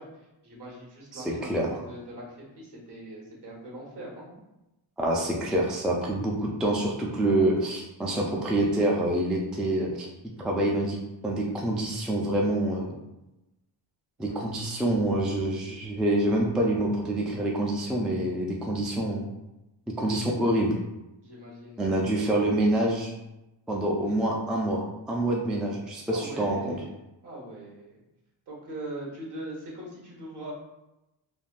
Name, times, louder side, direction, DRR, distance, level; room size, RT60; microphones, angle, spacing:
voice 1, 0.0-4.3 14.2-14.5 20.1-20.7 21.2-22.0 24.0-24.1 26.1-26.9 27.2-28.0 28.5-30.5, right 1 dB, 55° right, -3 dB, 1.3 m, -41 dB
voice 2, 1.1-1.8 5.0-10.1 10.4-11.0 11.2-12.9 14.2-19.3 20.0-20.8 21.8-23.1 23.7-26.8, right 1 dB, ahead, -2 dB, 0.3 m, -26 dB
3.3 x 2.2 x 2.4 m, 0.95 s
cardioid pair, 85°, 47 cm